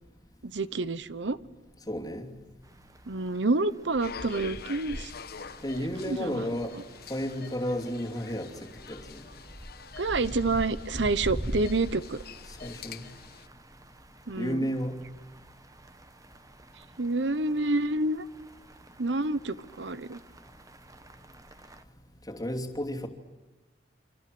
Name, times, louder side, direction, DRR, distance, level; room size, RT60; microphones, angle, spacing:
voice 1, 0.4-1.4 3.1-5.1 5.8-6.4 10.0-12.2 14.3-14.7 17.0-18.3 19.0-20.2, right 2 dB, 75° right, 1.0 m, -28 dB
voice 2, 1.9-2.3 5.6-6.7 7.1-9.2 12.6-13.1 14.4-15.0 22.3-23.1, equal, 20° left, 2.9 m, -32 dB
sound 1, 2.7-21.8, right 1 dB, 20° right, 1.1 m, -44 dB
sound 2, 4.0-13.5, left 6 dB, 60° left, 1.2 m, -46 dB
28.5 x 25.5 x 7.8 m
head